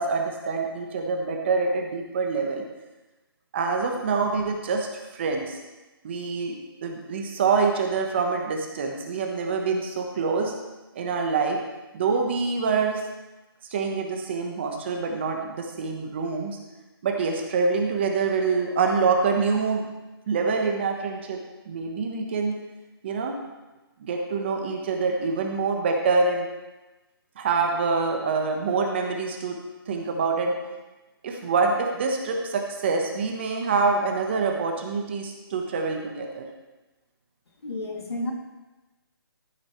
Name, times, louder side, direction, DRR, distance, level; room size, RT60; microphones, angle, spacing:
voice 1, 0.0-2.6 3.5-5.6 6.0-10.5 10.9-11.6 11.9-13.0 13.7-16.6 17.0-19.9 20.3-21.4 21.7-22.6 23.0-23.3 24.0-26.5 27.4-29.6 29.9-30.5 31.2-36.5, right 4 dB, 25° right, 2 dB, 1.2 m, -25 dB
voice 2, 37.6-38.3, left 2 dB, 80° left, 0 dB, 2.8 m, -31 dB
14.0 x 8.9 x 3.2 m, 1.1 s
hypercardioid pair, 170°, 13 cm